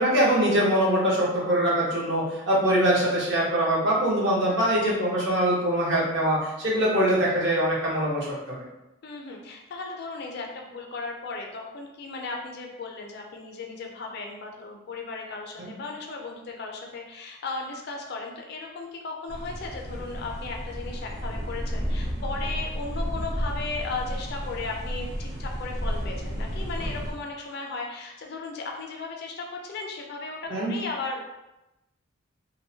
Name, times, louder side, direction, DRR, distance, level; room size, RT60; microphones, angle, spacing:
voice 1, 0.0-8.6 30.5-30.7, right 1 dB, 60° right, -5 dB, 0.8 m, -23 dB
voice 2, 4.5-4.8 7.0-7.2 9.0-31.2, left 3 dB, 50° left, 1 dB, 0.4 m, -36 dB
sound 1, 19.3-27.1, equal, 15° right, 0.4 m, -32 dB
2.7 x 2.1 x 2.7 m, 0.96 s
head